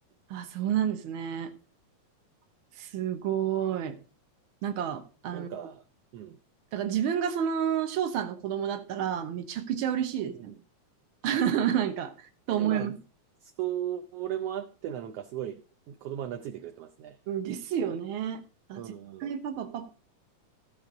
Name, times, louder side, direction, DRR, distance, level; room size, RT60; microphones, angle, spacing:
voice 1, 0.3-1.5 2.8-4.0 4.6-5.5 6.7-10.5 11.2-12.9 17.3-18.4 18.7-18.8 19.2-19.9, right 9 dB, 55° right, 1.6 m, -30 dB
voice 2, 5.3-5.8 6.1-6.4 10.4-10.6 12.5-13.0 13.4-15.6 15.9-17.2 18.8-19.3, right 10 dB, 70° right, 1.5 m, -36 dB
15.0 x 5.1 x 5.0 m
omnidirectional pair, 3.4 m